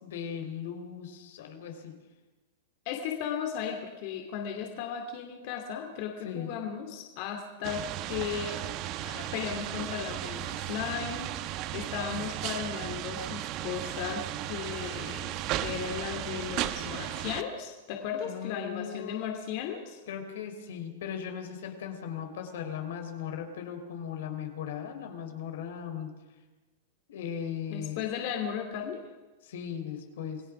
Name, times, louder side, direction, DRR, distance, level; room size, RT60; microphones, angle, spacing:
voice 1, 0.0-2.0 6.2-6.5 18.2-19.5 20.1-26.1 27.1-28.0 29.4-30.4, left 8 dB, 75° left, 6 dB, 3.7 m, -38 dB
voice 2, 2.8-8.6 9.0-20.0 27.7-29.0, left 8 dB, 50° left, 3 dB, 2.7 m, -36 dB
sound 1, 7.6-17.4, right 13 dB, 40° right, 1.1 m, -35 dB
27.5 x 17.0 x 6.1 m, 1.2 s
supercardioid pair, 140°, 0 cm